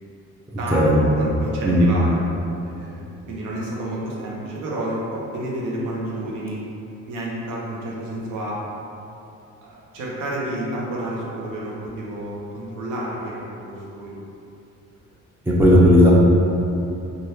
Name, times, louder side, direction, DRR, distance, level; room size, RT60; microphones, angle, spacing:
voice 1, 0.6-2.2 2.6-6.6 7.1-8.6 9.6-14.2, right 1 dB, 85° right, -5 dB, 0.8 m, -30 dB
voice 2, 15.5-16.1, equal, 5° right, -5 dB, 0.6 m, -14 dB
3.3 x 2.4 x 2.8 m, 2.8 s
cardioid pair, 90°, 30 cm